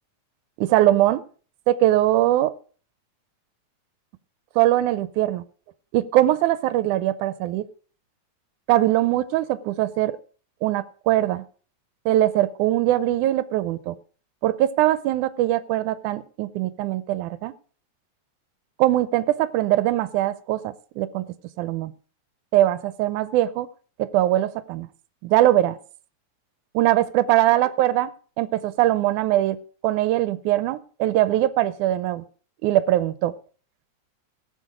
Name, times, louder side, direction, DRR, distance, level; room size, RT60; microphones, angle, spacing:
voice 1, 0.6-1.2 1.7-2.5 4.6-5.4 5.9-7.6 8.7-10.1 10.6-11.4 12.1-14.0 14.4-17.5 18.8-21.3 21.6-21.9 22.5-23.7 24.0-24.9 25.2-25.8 26.7-28.1 28.4-29.6 29.8-32.2 32.6-33.3, right 14 dB, 90° right, 14 dB, 2.2 m, -21 dB
17.0 x 7.0 x 5.0 m, 0.41 s
omnidirectional pair, 3.4 m